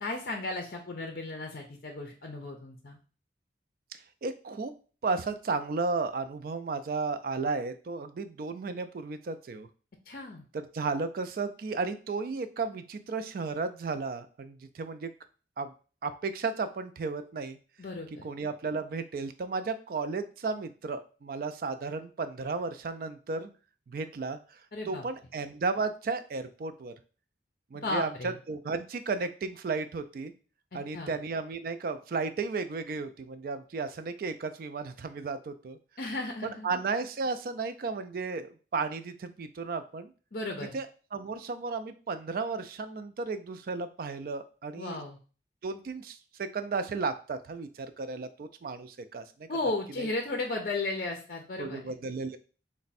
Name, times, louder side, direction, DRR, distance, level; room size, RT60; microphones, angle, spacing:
voice 1, 0.0-3.0 10.1-10.4 17.8-18.3 24.7-25.0 27.8-28.3 30.7-31.1 36.0-36.7 40.3-40.8 44.8-45.2 49.5-51.8, left 2 dB, 50° left, 2 dB, 0.5 m, -35 dB
voice 2, 4.2-4.7 5.0-9.7 10.5-15.1 15.6-15.7 16.0-17.6 18.2-23.5 23.9-24.6 24.8-26.9 27.7-30.3 30.7-35.8 36.4-40.1 40.7-40.9 41.1-45.0 45.6-49.5 50.0-50.1 51.6-52.4, right 4 dB, 50° right, 10 dB, 0.3 m, -34 dB
3.3 x 2.1 x 4.1 m, 0.37 s
head